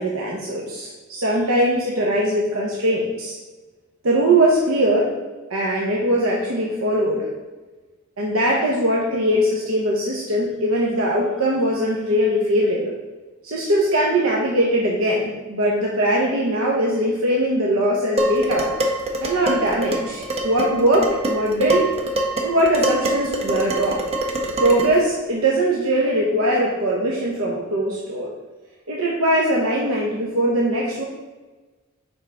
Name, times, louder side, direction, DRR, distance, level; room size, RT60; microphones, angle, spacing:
voice 1, 0.0-3.3 4.0-5.1 5.5-7.3 8.2-12.9 13.4-18.7 19.2-21.9 22.4-24.0 24.6-28.3 28.9-31.0, right 1 dB, 85° right, -3 dB, 0.9 m, -21 dB
Dishes pots and pans, 18.2-25.0, right 1 dB, 30° right, 0.8 m, -25 dB
7.2 x 5.0 x 3.4 m, 1.2 s
head